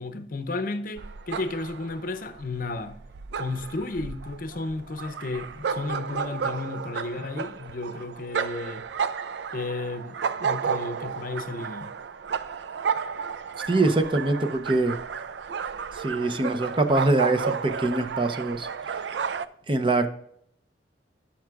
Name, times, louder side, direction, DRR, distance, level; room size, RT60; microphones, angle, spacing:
voice 1, 0.0-3.0 3.4-8.9 9.5-11.9, left 3 dB, 50° left, 0.6 m, -33 dB
sound 1, 1.0-19.5, right 6 dB, 70° right, 0.4 m, -32 dB
voice 2, 13.7-15.0 15.9-19.0 19.7-20.1, right 2 dB, 30° right, 0.6 m, -24 dB
12.0 x 5.9 x 2.4 m
head